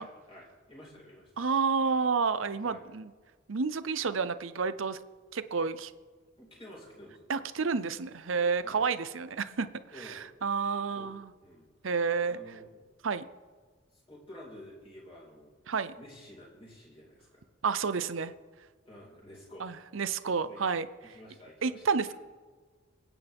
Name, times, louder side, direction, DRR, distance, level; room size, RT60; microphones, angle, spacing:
voice 1, 0.0-1.5 2.6-2.8 6.4-7.3 8.6-8.8 9.9-10.3 10.9-11.1 11.4-11.7 12.3-12.9 13.9-15.5 16.0-17.4 18.9-19.7 20.4-20.6 21.0-22.1, left 1 dB, 30° left, -4 dB, 4.6 m, -51 dB
voice 2, 1.4-3.1 3.5-5.0 5.3-5.9 7.3-9.7 10.0-11.3 11.8-12.4 13.0-13.2 15.7-15.9 17.6-18.3 19.6-20.9 21.6-22.1, right 5 dB, 85° right, 13 dB, 0.7 m, -30 dB
27.5 x 9.3 x 3.6 m, 1.5 s
head